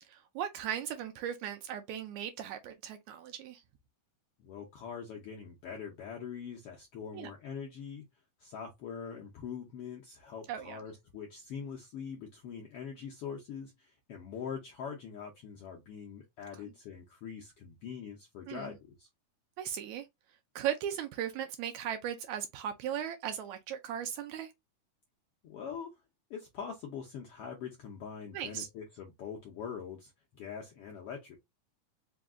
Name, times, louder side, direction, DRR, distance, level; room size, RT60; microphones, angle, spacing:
voice 1, 0.1-3.6 7.1-7.3 10.5-10.8 18.5-18.7 19.6-20.1 20.6-24.5 28.3-28.7, right 10 dB, 75° right, 1.7 m, -37 dB
voice 2, 4.4-8.0 8.4-19.1 25.4-25.9 26.3-31.4, left 7 dB, 75° left, 1.3 m, -43 dB
5.0 x 2.3 x 3.5 m
omnidirectional pair, 3.6 m